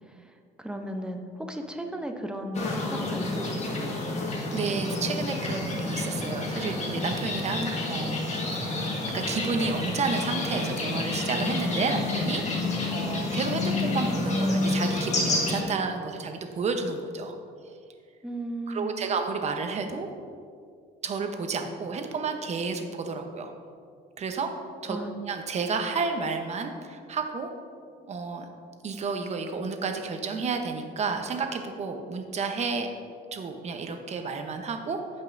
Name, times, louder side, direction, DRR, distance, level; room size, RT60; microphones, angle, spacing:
voice 1, 0.6-3.9 18.2-18.9 24.9-25.1, right 1 dB, 5° right, 4 dB, 0.8 m, -35 dB
sound 1, 2.5-15.6, left 2 dB, 40° left, 1.6 m, -29 dB
voice 2, 4.5-8.8 9.1-17.4 18.7-20.1 21.0-23.5 24.2-24.6 24.8-25.0 25.2-27.5 28.0-28.5 28.8-32.9 33.3-35.0, right 4 dB, 40° right, 5 dB, 0.9 m, -31 dB
15.0 x 5.4 x 2.7 m, 2.3 s
cardioid pair, 110°, 17 cm